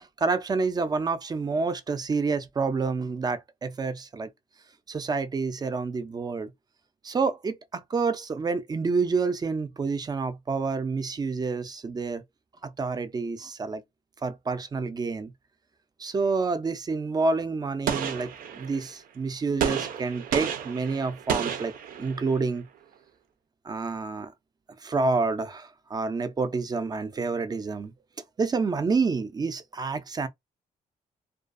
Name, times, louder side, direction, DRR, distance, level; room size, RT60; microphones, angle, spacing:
voice 1, 0.2-4.3 4.9-6.5 7.0-12.2 12.8-13.8 14.2-15.3 16.0-21.7 22.0-22.6 23.7-24.3 24.8-27.9 28.4-30.3, right 4 dB, 25° right, 0.4 m, -28 dB
Gunshot gunfire, 17.9-18.9 19.6-22.4, right 8 dB, 75° right, 0.5 m, -31 dB
2.3 x 2.3 x 2.5 m
cardioid pair, 95°, 15 cm